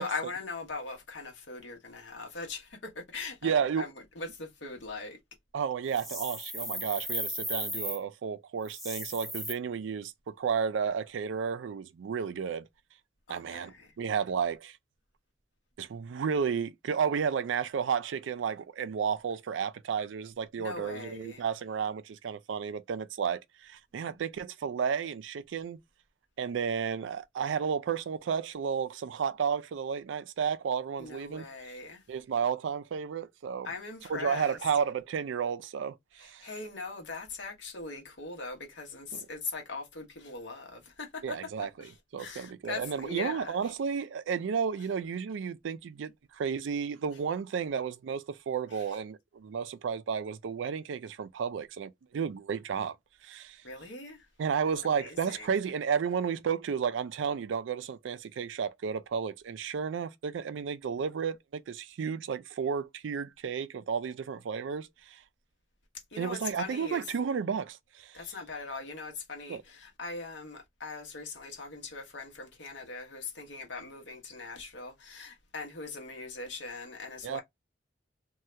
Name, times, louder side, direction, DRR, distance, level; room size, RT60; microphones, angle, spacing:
voice 1, 0.0-5.2 13.3-13.9 20.6-21.4 31.0-32.0 33.6-34.6 36.2-43.7 48.7-49.0 53.6-54.3 54.8-55.5 66.1-67.1 68.1-77.4, left 3 dB, 70° left, 1.1 m, -41 dB
voice 2, 3.4-3.9 5.5-12.7 13.3-14.8 15.8-25.8 26.4-31.4 32.1-33.7 34.1-36.5 39.1-39.2 41.2-41.7 42.1-53.0 53.2-53.6 54.4-65.2 66.2-68.2 69.5-69.6 77.2-77.4, right 6 dB, 90° right, 0.4 m, -32 dB
sound 1, 5.9-8.0 8.6-9.5, equal, ahead, 0.7 m, -36 dB
2.8 x 2.3 x 3.1 m
head